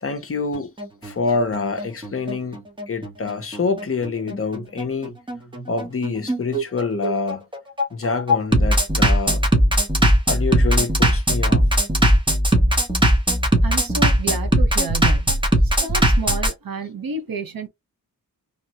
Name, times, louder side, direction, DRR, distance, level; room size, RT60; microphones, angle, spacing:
voice 1, 0.0-0.7 1.0-2.6 2.9-5.1 5.7-7.4 7.9-9.4 10.3-11.6, left 4 dB, 40° left, 0.6 m, -26 dB
Bass drum, 0.5-16.5, right 1 dB, 15° right, 0.9 m, -18 dB
voice 2, 13.6-15.3 15.8-17.7, right 4 dB, 75° right, 0.9 m, -30 dB
3.0 x 2.2 x 2.8 m
wide cardioid pair, 130°, 35 cm